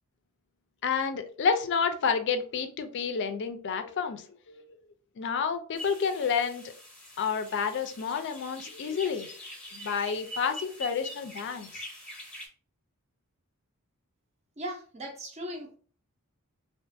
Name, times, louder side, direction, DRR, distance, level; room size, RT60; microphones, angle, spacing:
voice 1, 0.8-4.7 5.2-6.7 7.2-9.3 9.7-11.7, left 6 dB, 55° left, 8 dB, 0.4 m, -30 dB
sound 1, 5.8-12.5, equal, 5° left, 0.7 m, -44 dB
voice 2, 14.6-15.8, equal, 30° right, 3 dB, 0.6 m, -38 dB
2.4 x 2.3 x 2.6 m, 0.43 s
head